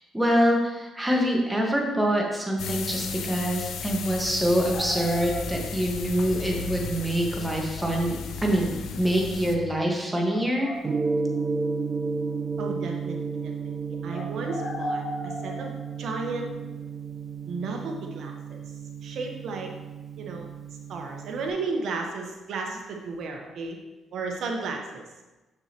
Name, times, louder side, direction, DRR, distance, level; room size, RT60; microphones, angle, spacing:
voice 1, 0.1-10.7, equal, 10° right, -1 dB, 1.4 m, -25 dB
sound 1, 2.6-9.6, left 6 dB, 75° left, 0.5 m, -35 dB
sound 2, 4.7-6.1 7.8-8.1 9.4-9.5 10.3-11.4 14.1-16.3 18.7-18.8, left 1 dB, 40° left, 0.9 m, -37 dB
Gong, 10.8-21.5, right 4 dB, 35° right, 0.4 m, -32 dB
voice 2, 12.6-13.2 13.4-16.5 17.5-18.6 19.0-19.7 20.2-20.5 20.9-23.8 24.1-25.0, right 3 dB, 70° right, 2 dB, 1.0 m, -34 dB
6.3 x 6.3 x 2.9 m, 1.1 s
cardioid pair, 90°, 0 cm